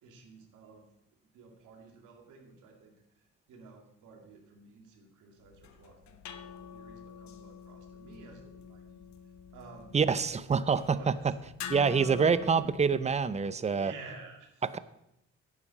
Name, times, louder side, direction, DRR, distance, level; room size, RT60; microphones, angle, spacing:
voice 1, 0.0-0.9 1.3-9.0 9.5-10.1 10.7-11.3 11.9-12.4 13.7-14.8, right 3 dB, 90° right, 3 dB, 2.3 m, -52 dB
sound 1, 5.4-13.5, left 7 dB, 65° left, 1.0 m, -47 dB
voice 2, 9.9-11.0 11.7-13.9 14.7-14.8, right 5 dB, 20° right, 15 dB, 0.6 m, -26 dB
11.0 x 9.9 x 4.2 m, 0.81 s
cardioid pair, 90°, 30 cm